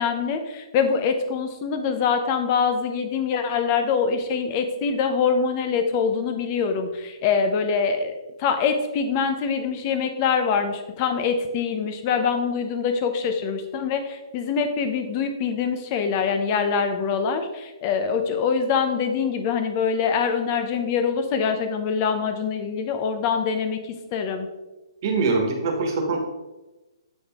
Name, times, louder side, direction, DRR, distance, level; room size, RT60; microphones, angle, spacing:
voice 1, 0.0-8.1 8.4-24.5, left 6 dB, 25° left, 7 dB, 0.7 m, -24 dB
voice 2, 25.0-26.2, right 3 dB, 40° right, 3 dB, 1.5 m, -23 dB
8.1 x 5.3 x 3.7 m, 1.1 s
hypercardioid pair, 165°, 3 cm